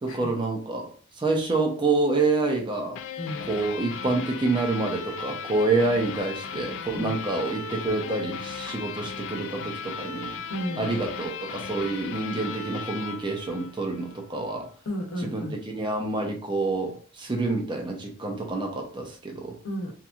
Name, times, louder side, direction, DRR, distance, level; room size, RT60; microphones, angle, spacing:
voice 1, 0.0-0.9 1.2-3.0 3.5-10.3 10.8-14.7 15.2-19.6, right 3 dB, 20° right, 0.5 m, -27 dB
sound 1, 2.9-14.2, left 6 dB, 65° left, 0.3 m, -36 dB
voice 2, 3.2-3.5 6.9-7.2 10.5-10.9 14.8-15.6 19.6-19.9, equal, 90° left, 0.8 m, -33 dB
2.8 x 2.5 x 2.4 m
head